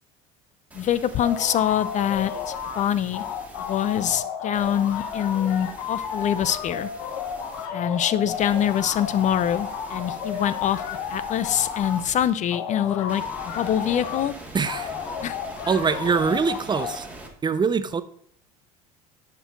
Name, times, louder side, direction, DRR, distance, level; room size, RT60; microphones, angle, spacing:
voice 1, 0.7-3.2 3.6-6.9 7.7-10.8 11.1-14.3 15.2-15.4, left 10 dB, 40° left, 0.4 m, -24 dB
sound 1, 0.7-4.2 4.5-7.7 8.3-12.3 13.1-17.3, right 1 dB, 10° right, 1.7 m, -43 dB
sound 2, 1.2-2.8 3.1-12.0 12.5-14.2 14.6-17.0, left 7 dB, 80° left, 0.9 m, -33 dB
voice 2, 14.5-14.9 15.7-17.1 17.4-18.0, right 5 dB, 25° right, 0.5 m, -23 dB
10.0 x 4.5 x 3.7 m
supercardioid pair, 85°, 18 cm